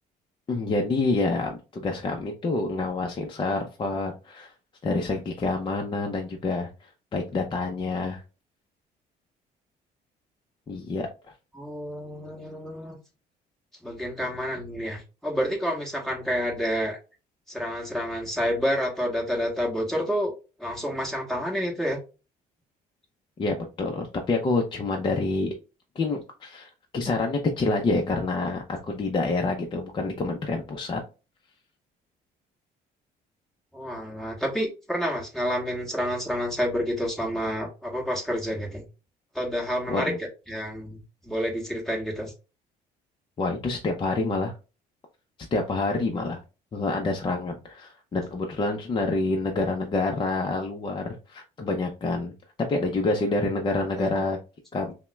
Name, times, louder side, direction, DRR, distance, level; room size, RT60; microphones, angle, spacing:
voice 1, 0.5-4.5 4.8-8.2 10.7-11.1 23.4-25.5 26.0-31.0 39.9-40.2 43.4-44.5 45.5-46.4 46.7-52.3 52.7-54.4 54.7-54.9, left 3 dB, 30° left, 0.5 m, -27 dB
voice 2, 11.5-13.0 13.8-17.0 17.5-20.3 20.6-22.0 33.7-38.9 39.3-40.1 40.5-42.3 54.0-54.2, equal, ahead, 1.3 m, -29 dB
5.5 x 2.1 x 2.2 m
cardioid pair, 110°, 17 cm